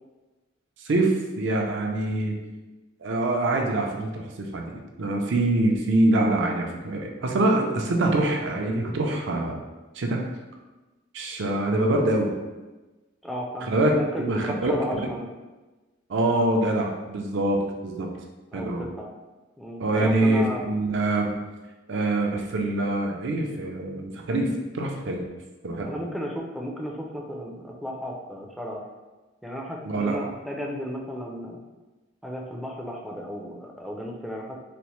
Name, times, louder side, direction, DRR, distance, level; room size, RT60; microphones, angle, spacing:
voice 1, 0.8-2.4 3.0-9.6 9.9-10.3 11.1-12.3 13.7-14.7 16.1-18.1 18.5-18.8 19.8-21.3 21.9-25.2 25.6-25.9 29.8-30.2, right 2 dB, 60° right, 1 dB, 0.5 m, -24 dB
voice 2, 13.2-15.3 18.5-19.1 19.6-20.6 25.8-28.8 29.4-31.6 32.2-34.6, equal, ahead, -1 dB, 0.4 m, -34 dB
4.1 x 2.1 x 3.0 m, 1.2 s
head